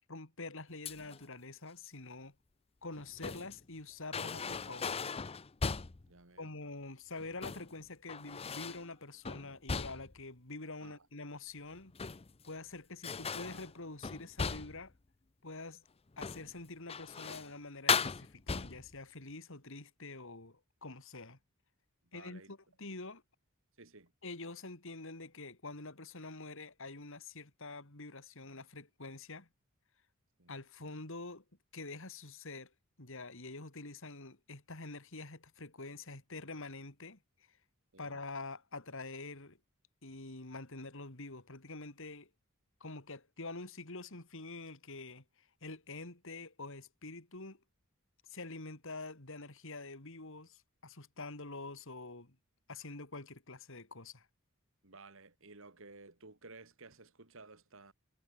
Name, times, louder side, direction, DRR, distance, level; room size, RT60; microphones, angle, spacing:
voice 1, 0.1-2.3 2.8-5.0 6.4-11.9 12.5-14.9 15.4-15.8 16.2-21.4 22.1-23.2 24.2-29.5 30.5-31.4 31.7-32.7 33.0-37.2 38.0-39.6 40.0-42.3 42.8-47.6 48.3-52.4 52.7-54.3, left 3 dB, 65° left, 3.4 m, -46 dB
sound 1, 0.8-1.3 2.8-3.6 4.1-6.1 7.2-7.7 8.1-8.9 9.2-10.2 11.7-12.5 13.0-14.9 16.1-16.5 16.9-17.5 17.9-19.0, left 5 dB, 30° left, 0.6 m, -37 dB
voice 2, 6.1-6.5 10.8-11.1 22.0-22.5 23.8-24.1 30.4-30.6 37.9-38.2 54.8-57.9, right 3 dB, 70° right, 3.0 m, -55 dB
head